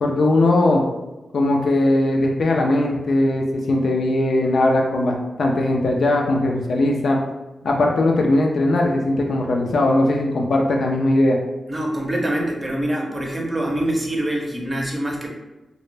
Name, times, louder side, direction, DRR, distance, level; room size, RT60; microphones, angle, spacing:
voice 1, 0.0-0.8 1.3-7.2 7.6-11.4, left 2 dB, 75° left, 1 dB, 0.3 m, -19 dB
voice 2, 11.7-15.3, right 1 dB, 25° right, 0 dB, 0.6 m, -24 dB
2.0 x 2.0 x 3.1 m, 1.0 s
cardioid pair, 55°, 0 cm